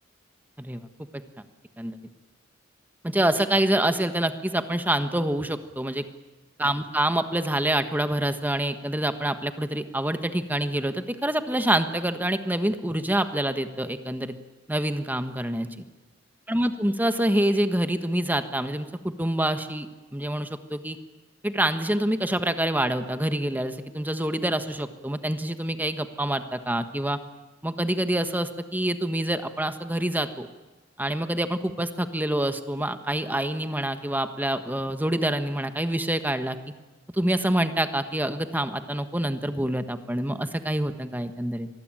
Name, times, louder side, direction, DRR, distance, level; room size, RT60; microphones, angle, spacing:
voice 1, 3.0-6.0 6.6-14.3 14.7-15.7 16.5-21.0 21.4-27.2 27.6-30.5 31.0-36.6 37.1-41.7, right 1 dB, 10° right, 9 dB, 1.4 m, -26 dB
25.5 x 20.0 x 9.1 m, 1.2 s
head